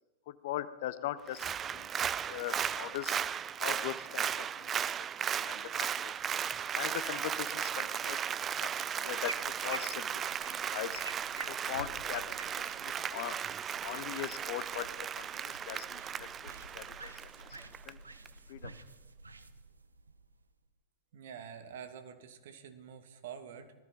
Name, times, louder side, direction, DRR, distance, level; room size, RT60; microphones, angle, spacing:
voice 1, 0.3-1.9 2.3-3.2 3.6-4.7 5.4-6.1 6.7-11.0 11.5-13.4 13.8-17.6 17.9-18.0 18.5-18.8, left 13 dB, 50° left, 14 dB, 0.7 m, -41 dB
Applause, 1.3-17.9 18.3-18.4, right 8 dB, 25° right, 0.3 m, -36 dB
sound 1, 8.7-20.7, right 3 dB, 80° right, 0.7 m, -50 dB
voice 2, 21.1-23.7, right 8 dB, 55° right, 8 dB, 1.4 m, -47 dB
19.5 x 13.5 x 3.9 m, 1.2 s
figure-of-eight pair, 90°, 0 cm